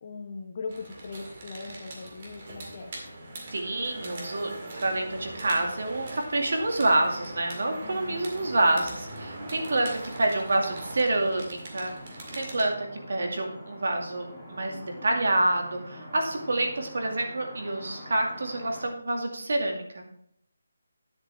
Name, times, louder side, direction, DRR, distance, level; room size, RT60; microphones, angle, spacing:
voice 1, 0.0-2.9 7.8-8.5, left 4 dB, 35° left, 4 dB, 1.2 m, -40 dB
sound 1, 0.7-12.6, right 1 dB, 35° right, 2.1 m, -41 dB
voice 2, 3.5-20.0, right 2 dB, 65° right, 2 dB, 2.2 m, -28 dB
sound 2, 6.7-18.8, equal, 5° right, 2.7 m, -46 dB
10.0 x 7.9 x 3.5 m, 0.68 s
figure-of-eight pair, 170°, 0 cm